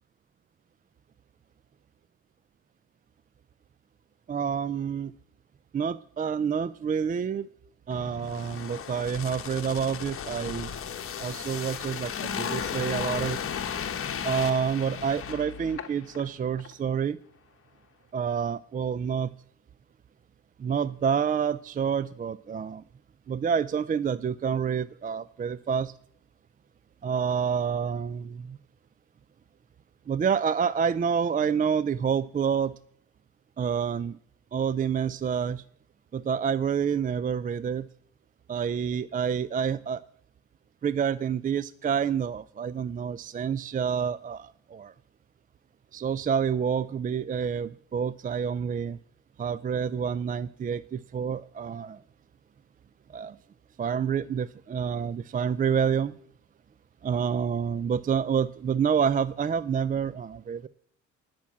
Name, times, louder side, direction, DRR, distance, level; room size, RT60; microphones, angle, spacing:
voice 1, 4.3-5.1 5.7-7.5 7.9-10.7 11.2-13.4 14.2-17.2 18.1-19.3 20.6-22.8 23.3-25.9 27.0-28.6 30.1-32.7 33.6-34.2 34.5-35.6 36.1-37.9 38.5-40.0 40.8-44.9 45.9-49.0 49.4-52.0 53.1-53.4 53.8-56.1 57.0-60.7, right 7 dB, 30° right, 17 dB, 0.4 m, -28 dB
sound 1, 7.9-16.3 16.6-16.7, left 7 dB, 45° left, 1.1 m, -35 dB
10.5 x 6.0 x 8.3 m, 0.62 s
cardioid pair, 90°, 30 cm